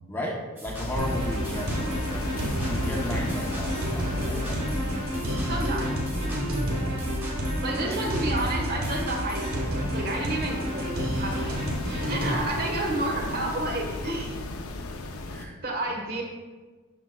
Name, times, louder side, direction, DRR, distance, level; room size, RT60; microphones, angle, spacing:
voice 1, 0.1-2.0 2.4-5.0 6.6-7.1 7.8-8.1 15.3-15.6, left 1 dB, 10° left, -2 dB, 0.7 m, -35 dB
sound 1, 0.6-9.5, equal, 10° right, 1.1 m, -35 dB
sound 2, 0.7-15.5, left 2 dB, 85° left, 0.7 m, -36 dB
sound 3, 1.0-12.4, equal, 90° right, 1.6 m, -30 dB
voice 2, 5.5-6.0 7.6-9.4 9.9-14.4 15.6-16.2, right 2 dB, 45° right, 0 dB, 1.3 m, -31 dB
12.0 x 4.9 x 2.3 m, 1.3 s
head